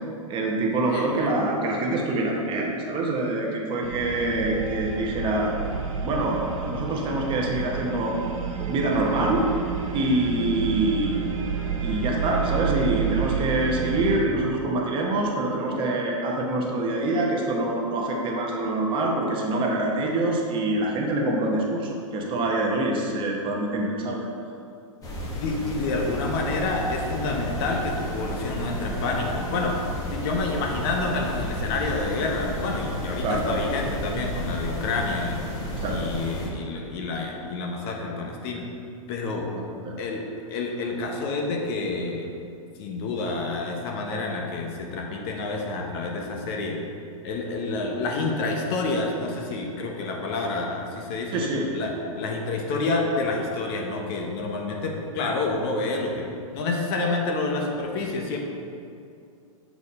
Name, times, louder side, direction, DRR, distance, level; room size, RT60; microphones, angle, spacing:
voice 1, 0.3-5.6 6.0-8.2 8.6-9.4 9.9-11.2 11.8-24.3 33.2-33.6 35.7-36.1 39.6-39.9 51.3-51.7, right 2 dB, 30° right, -1 dB, 0.9 m, -25 dB
voice 2, 0.9-1.3 25.3-29.8 30.1-35.5 35.9-38.6 39.1-39.5 40.0-40.2 40.5-42.3 42.8-46.8 47.2-51.4 51.7-56.3 56.5-58.4, left 3 dB, 45° left, 1 dB, 1.0 m, -28 dB
sound 1, 3.8-14.2, right 7 dB, 65° right, 1.1 m, -30 dB
sound 2, 25.0-36.5, equal, 20° left, 1.3 m, -32 dB
7.0 x 4.2 x 4.2 m, 2.5 s
hypercardioid pair, 125°, 18 cm